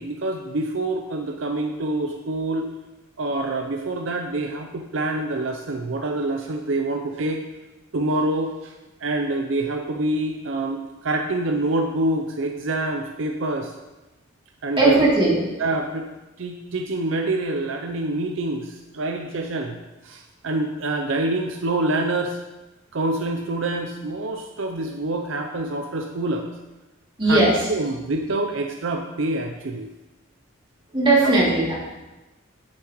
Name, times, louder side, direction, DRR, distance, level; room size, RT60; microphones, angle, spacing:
voice 1, 0.0-2.7 3.2-7.4 7.9-8.7 9.0-13.7 14.6-15.0 15.6-16.1 16.4-19.8 20.0-22.4 22.9-26.5 27.3-27.4 27.7-29.9 31.2-31.3, right 2 dB, 70° right, 4 dB, 0.6 m, -26 dB
voice 2, 14.8-15.6 27.2-27.6 30.9-31.7, right 2 dB, 25° right, -6 dB, 2.7 m, -18 dB
9.0 x 7.4 x 3.1 m, 1.1 s
head